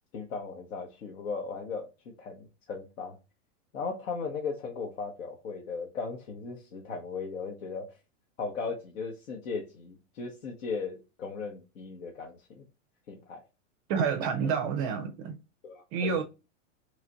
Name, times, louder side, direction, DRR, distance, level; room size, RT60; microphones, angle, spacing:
voice 1, 0.1-1.9 2.2-3.2 3.7-7.9 8.4-12.6 13.1-13.4 15.6-16.2, left 4 dB, 80° left, 0.9 m, -37 dB
voice 2, 13.9-15.4 15.9-16.2, right 6 dB, 35° right, 0.4 m, -28 dB
3.2 x 2.4 x 3.7 m
hypercardioid pair, 125°, 39 cm